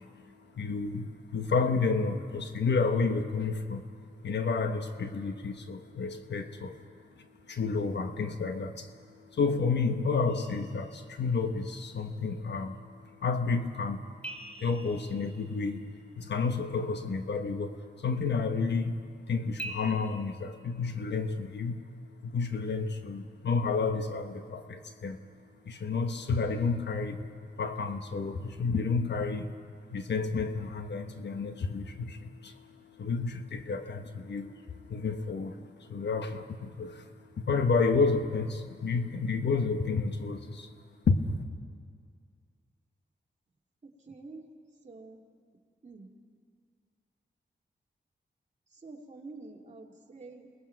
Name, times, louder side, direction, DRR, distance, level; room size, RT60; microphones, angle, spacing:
voice 1, 0.0-14.1 14.4-25.2 25.6-27.3 27.6-40.7 41.1-41.3, left 4 dB, 75° left, 7 dB, 1.2 m, -31 dB
sound 1, 10.3-11.6 14.2-16.2 19.6-19.9, right 2 dB, 5° left, 2.5 m, -44 dB
voice 2, 43.8-44.4 44.8-45.2 45.8-46.1 48.7-50.5, right 3 dB, 40° right, 0 dB, 2.6 m, -47 dB
28.5 x 20.0 x 4.6 m, 2.1 s
cardioid pair, 80°, 18 cm